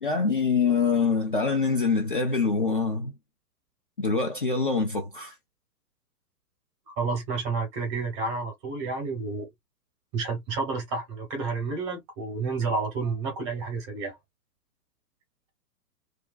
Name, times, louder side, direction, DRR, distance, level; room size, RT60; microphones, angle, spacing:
voice 1, 0.0-3.1 4.0-5.4, left 4 dB, 35° left, 0.4 m, -25 dB
voice 2, 6.9-9.5 10.1-14.2, right 4 dB, 20° right, 0.8 m, -30 dB
2.4 x 2.2 x 2.4 m
figure-of-eight pair, 120°, 48 cm